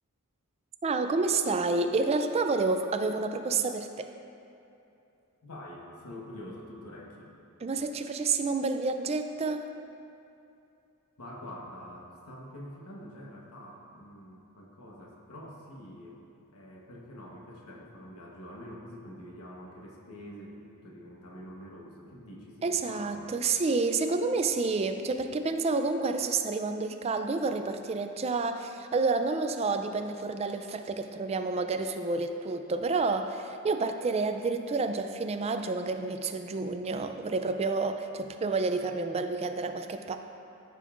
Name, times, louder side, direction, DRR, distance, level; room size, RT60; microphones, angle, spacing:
voice 1, 0.8-4.1 7.6-9.7 22.6-40.2, right 3 dB, 30° right, 7 dB, 0.3 m, -29 dB
voice 2, 5.4-7.3 11.2-16.2 16.5-23.3, equal, 85° left, -3 dB, 1.1 m, -46 dB
13.5 x 5.3 x 2.5 m, 2.7 s
head